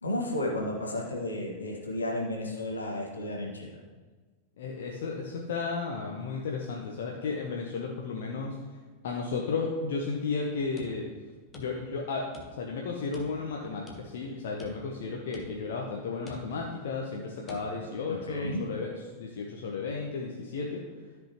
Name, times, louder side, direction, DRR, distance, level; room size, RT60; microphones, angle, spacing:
voice 1, 0.0-3.8 18.1-18.6, left 1 dB, 75° left, -2 dB, 1.7 m, -33 dB
voice 2, 4.6-8.6 9.0-11.1 11.5-18.9 19.2-20.8, left 4 dB, 55° left, -1 dB, 0.9 m, -33 dB
sound 1, 10.8-12.0 12.3-12.8 13.1-14.3 14.6-15.1 15.3-15.8 16.3-16.8 17.5-17.7, left 2 dB, 15° left, 1.3 m, -48 dB
13.0 x 5.4 x 3.1 m, 1.4 s
figure-of-eight pair, 90°, 0 cm